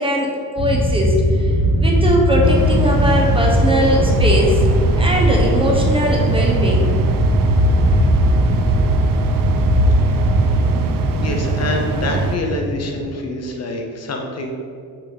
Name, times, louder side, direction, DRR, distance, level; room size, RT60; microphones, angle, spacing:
voice 1, 0.0-1.5 1.8-4.6 5.0-6.9, equal, 15° right, -1 dB, 0.9 m, -20 dB
sound 1, 0.6-13.0, equal, 35° right, 1.3 m, -18 dB
sound 2, 2.4-12.4, right 5 dB, 65° right, 0.6 m, -23 dB
voice 2, 11.2-14.5, left 2 dB, 45° left, 2 dB, 0.7 m, -25 dB
6.1 x 4.6 x 4.0 m, 2.3 s
cardioid pair, 135°, 37 cm